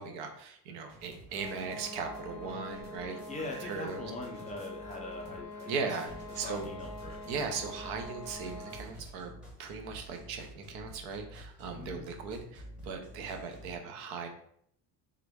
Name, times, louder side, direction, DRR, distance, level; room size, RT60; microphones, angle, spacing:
voice 1, 0.0-3.2 3.6-4.1 5.7-6.7 7.3-9.3 9.6-14.3, right 5 dB, 75° right, 4 dB, 0.8 m, -38 dB
sound 1, 0.9-9.1, right 3 dB, 45° right, 1.1 m, -54 dB
sound 2, 1.3-9.0, left 2 dB, 60° left, 0.6 m, -45 dB
voice 2, 3.3-6.1 6.4-7.5 11.7-12.0 13.3-13.5, left 2 dB, 20° left, 0 dB, 0.4 m, -42 dB
sound 3, 6.1-13.7, equal, 5° right, 0.8 m, -49 dB
3.6 x 2.2 x 3.4 m, 0.67 s
cardioid pair, 145°, 39 cm